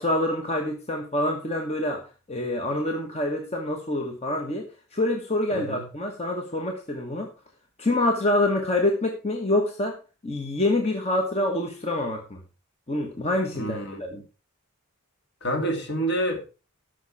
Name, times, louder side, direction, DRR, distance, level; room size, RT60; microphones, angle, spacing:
voice 1, 0.0-4.7 4.9-7.3 7.8-10.0 10.2-12.4 12.9-14.2, left 1 dB, 30° left, 1.3 m, -26 dB
voice 2, 5.5-5.8 13.5-14.2 15.4-16.5, right 1 dB, 50° left, 2.6 m, -28 dB
13.0 x 6.4 x 4.8 m
head